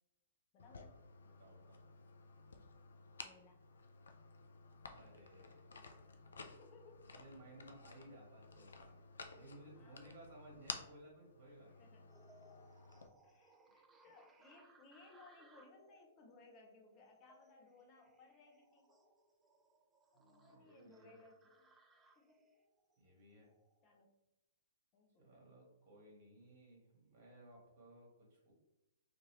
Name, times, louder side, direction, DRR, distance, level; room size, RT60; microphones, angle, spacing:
voice 1, 0.5-1.0 3.2-3.6 6.6-7.1 9.8-10.1 11.8-12.1 13.2-19.1 20.1-21.7 22.2-22.4 23.8-24.1 24.9-25.5, left 3 dB, 30° left, 1 dB, 0.6 m, -63 dB
sound 1, 0.6-13.1, left 4 dB, 70° left, 0.3 m, -54 dB
voice 2, 1.2-1.8 4.9-5.8 7.1-8.9 9.3-11.9 20.1-21.2 23.0-23.5 25.2-28.5, right 1 dB, 40° right, -2 dB, 1.2 m, -59 dB
sound 2, 12.1-23.8, right 2 dB, 15° right, 0.3 m, -68 dB
2.6 x 2.5 x 2.9 m, 0.94 s
figure-of-eight pair, 115°, 0 cm